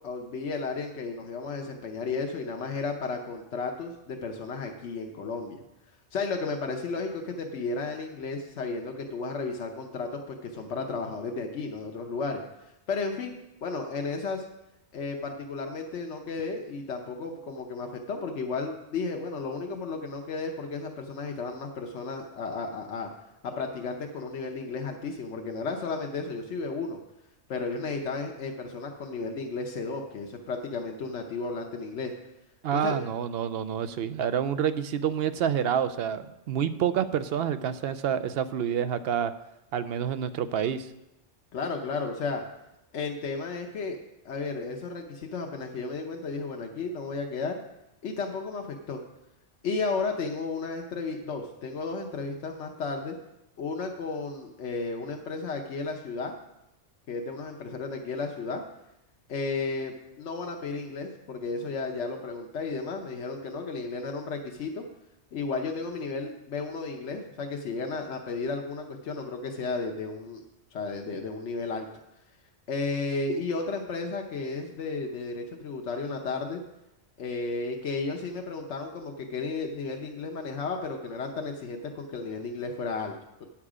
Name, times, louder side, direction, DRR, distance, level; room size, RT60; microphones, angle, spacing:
voice 1, 0.0-5.6 6.1-12.4 12.9-13.4 13.6-14.4 14.9-23.1 23.4-27.0 27.5-32.1 32.7-33.0 41.5-42.4 42.9-44.0 44.2-47.6 48.0-49.0 49.6-53.2 53.6-56.4 57.1-58.6 59.3-64.8 65.3-70.4 70.7-71.9 72.7-76.6 77.2-83.4, left 4 dB, 80° left, 2 dB, 1.1 m, -33 dB
voice 2, 32.6-39.3 39.7-40.9, right 8 dB, 65° right, 12 dB, 0.8 m, -28 dB
9.5 x 7.2 x 4.9 m, 0.91 s
omnidirectional pair, 1.2 m